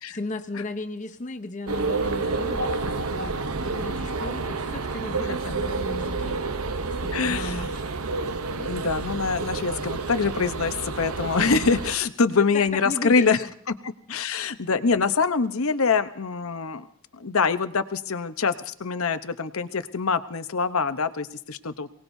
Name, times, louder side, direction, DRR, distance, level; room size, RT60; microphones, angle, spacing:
voice 1, 0.1-6.4 7.0-7.7 12.5-13.5, left 2 dB, 35° left, 8 dB, 0.8 m, -36 dB
sound 1, 1.7-12.0, right 3 dB, 75° right, 0.8 m, -29 dB
voice 2, 7.1-7.7 8.5-16.9 17.1-21.9, left 5 dB, 70° left, 11 dB, 0.9 m, -25 dB
28.0 x 18.5 x 2.7 m, 0.65 s
head